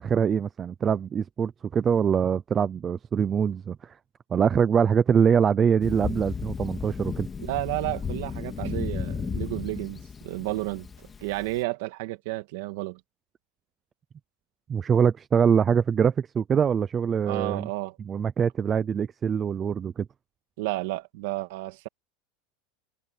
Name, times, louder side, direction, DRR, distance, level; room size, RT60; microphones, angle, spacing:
voice 1, 0.0-4.0 4.3-7.3 14.7-17.7 18.1-20.1, right 7 dB, 15° right, 0.5 m, -24 dB
Thunder, 5.8-11.5, left 6 dB, 15° left, 3.6 m, -34 dB
voice 2, 7.4-10.9 11.2-13.0 17.2-18.0 20.6-21.9, right 19 dB, 55° right, 2.0 m, -31 dB
supercardioid pair, 180°, 0 cm